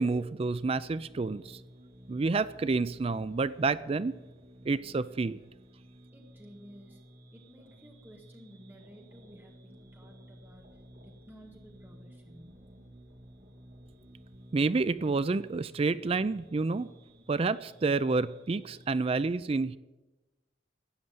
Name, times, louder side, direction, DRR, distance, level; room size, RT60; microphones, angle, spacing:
voice 1, 0.0-1.6 2.1-4.1 4.6-5.4 14.5-16.9 17.3-19.8, right 3 dB, 30° right, 15 dB, 0.4 m, -29 dB
sound 1, 0.6-19.2, equal, 60° right, 2.6 m, -54 dB
voice 2, 6.1-7.0 7.3-10.7 11.0-12.6, equal, 10° right, 1 dB, 1.8 m, -54 dB
13.0 x 8.7 x 9.5 m, 1.1 s
head